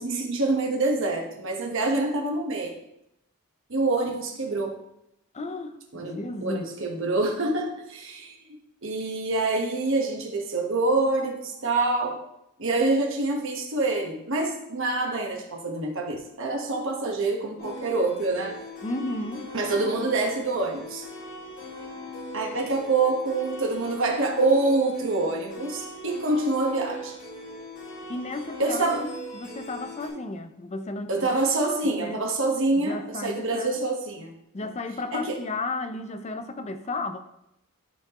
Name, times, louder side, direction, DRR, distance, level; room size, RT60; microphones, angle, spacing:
voice 1, 0.0-2.8 3.7-4.7 5.9-8.6 8.8-12.2 12.6-18.6 19.5-21.1 22.3-27.2 28.6-29.1 31.1-34.3 35.1-35.4, right 2 dB, 60° right, 1.3 m, -26 dB
voice 2, 5.3-6.7 18.8-19.5 28.1-31.3 31.8-32.3 32.8-33.8 34.5-37.2, left 2 dB, 30° left, 0.5 m, -33 dB
sound 1, 17.6-30.1, left 1 dB, 55° left, 2.9 m, -40 dB
12.5 x 4.4 x 3.0 m
head